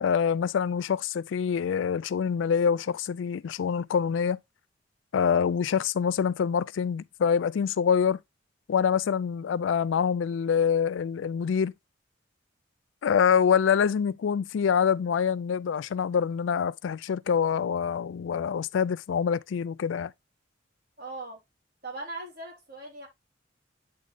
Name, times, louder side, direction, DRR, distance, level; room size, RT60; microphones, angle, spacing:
voice 1, 0.0-4.4 5.1-8.2 8.7-11.7 13.0-20.1, left 7 dB, 75° left, 0.3 m, -25 dB
voice 2, 21.0-21.4 21.8-23.1, right 2 dB, 50° right, 3.0 m, -39 dB
8.5 x 4.1 x 3.2 m
head